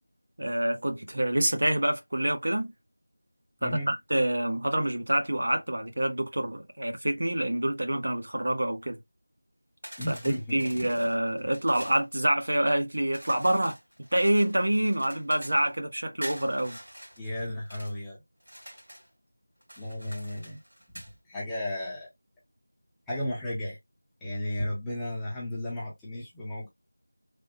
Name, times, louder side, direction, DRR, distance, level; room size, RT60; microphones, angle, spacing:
voice 1, 0.4-2.7 3.6-9.0 10.1-13.8 14.1-16.8, right 1 dB, 65° right, 0.9 m, -27 dB
voice 2, 3.6-4.0 10.0-11.1 17.2-18.2 19.8-20.6 21.2-22.1 23.1-23.8 24.2-26.7, left 1 dB, 5° left, 0.6 m, -34 dB
sound 1, 9.8-12.0 13.1-15.7 16.2-17.9 18.4-19.1 19.6-21.1, equal, 85° right, 1.9 m, -45 dB
3.3 x 2.0 x 2.8 m
figure-of-eight pair, 175°, 0 cm